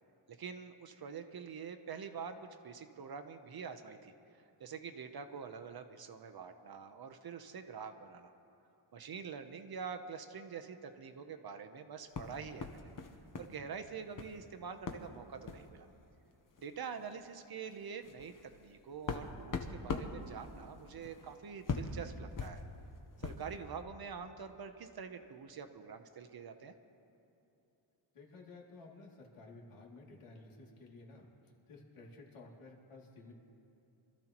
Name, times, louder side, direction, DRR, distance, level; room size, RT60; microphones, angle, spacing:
voice 1, 0.3-8.3 8.9-12.9 13.4-15.9 16.6-18.3 18.6-22.6 23.2-26.7, right 6 dB, 45° right, 7 dB, 0.8 m, -46 dB
sound 1, 12.1-13.6 13.8-14.4 14.9-15.1 15.4-15.7 16.6-16.7 17.0-17.2 17.7-23.5, left 4 dB, 40° left, 0.9 m, -42 dB
voice 2, 28.1-33.3, left 3 dB, 75° left, -2 dB, 2.7 m, -54 dB
25.5 x 14.0 x 3.0 m, 3.0 s
wide cardioid pair, 170°, 50 cm